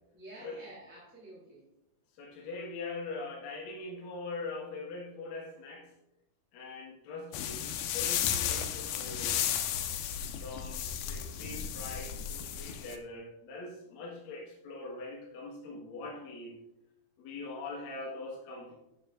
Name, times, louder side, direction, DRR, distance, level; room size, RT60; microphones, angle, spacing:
voice 1, 0.1-1.6 17.5-18.1, right 2 dB, 5° right, -7 dB, 2.3 m, -50 dB
voice 2, 2.2-5.9 6.5-9.4 10.4-16.6 17.2-18.7, left 3 dB, 70° left, -2 dB, 3.1 m, -42 dB
sound 1, 7.3-13.0, left 9 dB, 85° left, 2.7 m, -34 dB
11.5 x 10.0 x 2.5 m, 0.89 s
omnidirectional pair, 4.4 m